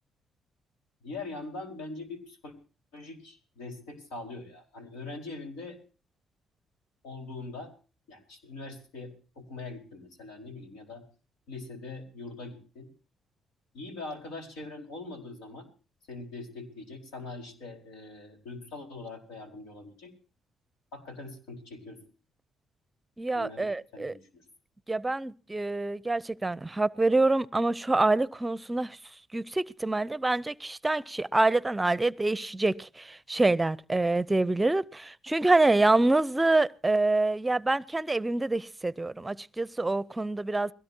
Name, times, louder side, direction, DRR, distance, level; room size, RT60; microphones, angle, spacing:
voice 1, 1.0-2.5 2.9-5.8 7.0-7.7 8.1-11.0 11.5-12.9 13.7-15.7 16.1-20.1 20.9-22.0 23.3-24.4, left 3 dB, 90° left, 4.6 m, -42 dB
voice 2, 23.2-24.1 24.9-29.0 29.3-40.7, right 2 dB, 20° right, 0.6 m, -26 dB
22.0 x 17.5 x 2.8 m
supercardioid pair, 65°, 0 cm